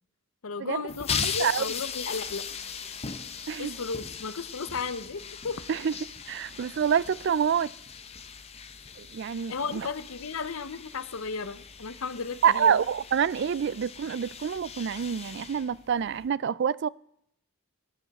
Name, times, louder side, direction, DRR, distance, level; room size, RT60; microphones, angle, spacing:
voice 1, 0.4-2.4 3.6-5.6 9.5-12.8, left 5 dB, 75° left, 0.7 m, -34 dB
sound 1, 0.9-16.3, left 6 dB, 30° left, 0.8 m, -39 dB
voice 2, 6.3-7.7 9.0-9.9 12.4-16.9, right 7 dB, 55° right, 0.3 m, -27 dB
15.5 x 9.2 x 4.1 m
head